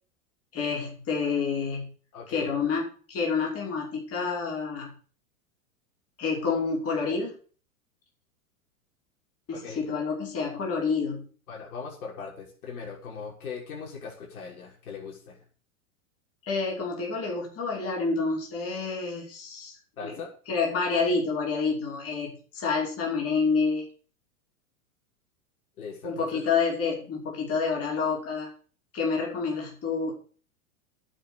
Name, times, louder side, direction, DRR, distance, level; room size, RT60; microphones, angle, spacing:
voice 1, 0.5-1.9 2.3-4.9 6.2-7.3 9.5-11.3 16.4-19.8 20.0-20.1 20.5-23.9 26.0-28.5 28.9-30.1, left 4 dB, 35° left, -2 dB, 5.5 m, -28 dB
voice 2, 2.1-2.5 9.5-9.8 11.5-15.4 20.0-20.3 25.8-26.4, left 5 dB, 80° left, -1 dB, 6.2 m, -39 dB
9.2 x 7.5 x 9.1 m, 0.42 s
hypercardioid pair, 110°, 43 cm